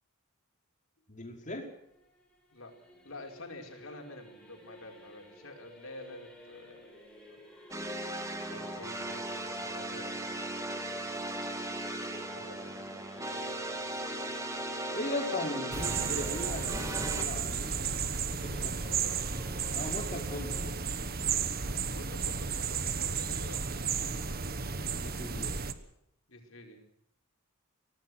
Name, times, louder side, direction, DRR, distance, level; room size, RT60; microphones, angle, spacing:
voice 1, 1.1-1.7 14.9-17.9 18.4-19.0 19.7-20.7 24.8-25.6, left 1 dB, 35° left, 2 dB, 4.7 m, -38 dB
Singing / Musical instrument, 1.3-20.7, left 1 dB, 5° left, 6.6 m, -53 dB
voice 2, 3.0-6.9 7.3-7.4 8.5-10.2 12.2-13.0 18.7-19.3 20.3-20.4 21.6-24.2 26.3-26.8, left 2 dB, 70° left, 2 dB, 5.2 m, -49 dB
sound 1, 7.7-17.2, right 1 dB, 15° right, 2.8 m, -37 dB
sound 2, 15.7-25.7, right 6 dB, 45° right, 1.4 m, -33 dB
24.5 x 18.0 x 6.3 m, 0.77 s
head